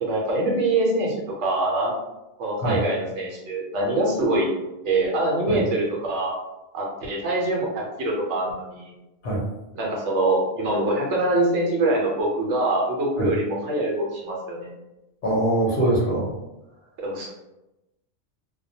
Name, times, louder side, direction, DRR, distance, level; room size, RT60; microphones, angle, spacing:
voice 1, 0.0-1.9 2.4-4.5 4.8-6.3 6.7-8.9 9.8-14.7 17.0-17.3, right 2 dB, 70° right, -3 dB, 0.9 m, -24 dB
voice 2, 15.2-16.3, right 1 dB, 50° left, -4 dB, 0.6 m, -23 dB
2.1 x 2.1 x 2.6 m, 0.96 s
omnidirectional pair, 1.4 m